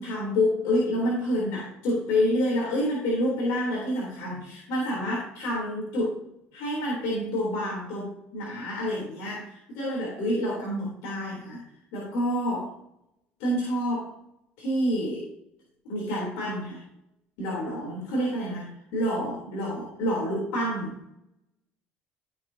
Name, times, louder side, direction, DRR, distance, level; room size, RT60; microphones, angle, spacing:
voice 1, 0.0-6.2 6.5-11.6 11.9-12.7 13.4-14.1 14.6-15.2 15.9-16.8 17.4-21.0, equal, 75° left, -4 dB, 3.7 m, -28 dB
14.0 x 6.6 x 2.9 m, 0.79 s
supercardioid pair, 75°, 5 cm